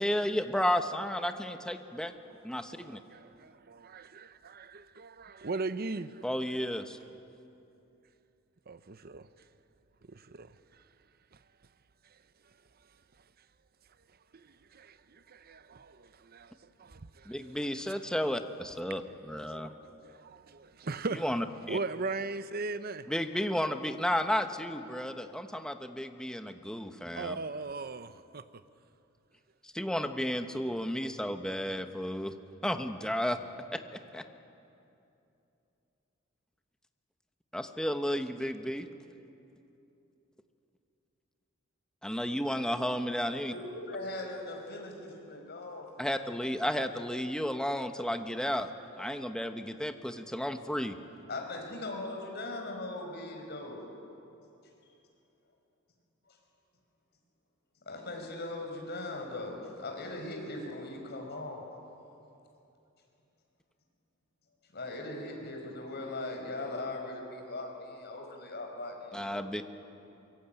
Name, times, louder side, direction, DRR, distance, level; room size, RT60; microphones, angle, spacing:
voice 1, 0.0-2.1 2.4-3.0 6.2-7.0 17.3-19.7 21.1-21.8 23.1-27.4 29.6-32.3 32.6-33.4 33.7-33.8 34.1-34.2 37.5-38.9 42.0-43.5 46.0-48.7 49.0-51.0 69.1-69.7, equal, 5° left, 1.1 m, -32 dB
voice 2, 3.9-6.2 8.7-9.3 10.1-10.5 14.3-14.4 14.7-16.5 16.8-17.3 19.5-21.2 21.7-23.1 27.2-28.4, right 3 dB, 45° right, 0.8 m, -38 dB
voice 3, 43.5-46.1 51.3-53.9 56.2-56.4 57.9-61.7 64.7-69.5, left 2 dB, 50° left, 5.3 m, -39 dB
23.5 x 23.0 x 9.1 m
head